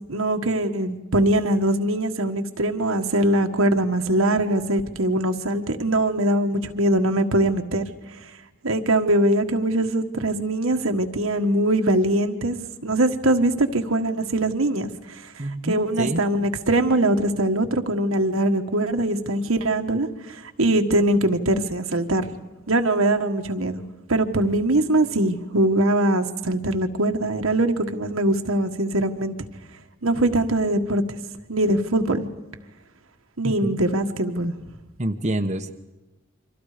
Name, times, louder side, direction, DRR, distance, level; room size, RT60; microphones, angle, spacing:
voice 1, 0.1-7.8 8.6-12.6 12.8-14.9 15.2-15.3 15.6-22.3 22.7-23.8 24.1-29.3 30.0-31.0 31.5-32.3 33.4-34.5, right 1 dB, 80° right, 5 dB, 1.6 m, -22 dB
voice 2, 15.4-16.2 33.4-33.8 35.0-35.7, right 1 dB, 35° right, 5 dB, 1.1 m, -27 dB
29.5 x 25.0 x 5.1 m, 1.1 s
head